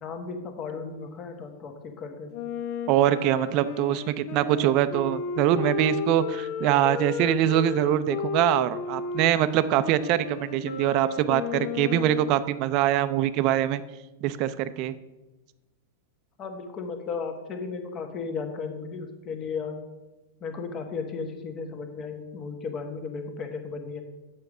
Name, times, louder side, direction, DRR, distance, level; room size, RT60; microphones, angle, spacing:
voice 1, 0.0-2.3 16.4-19.8 20.4-24.0, left 5 dB, 35° left, 5 dB, 1.3 m, -35 dB
Wind instrument woodwind instrument, 2.3-12.4, left 6 dB, 55° left, 0.5 m, -34 dB
voice 2, 2.9-13.8 14.2-14.9, right 12 dB, 50° right, 13 dB, 0.5 m, -23 dB
6.9 x 5.2 x 6.0 m, 1.1 s
hypercardioid pair, 110°, 0 cm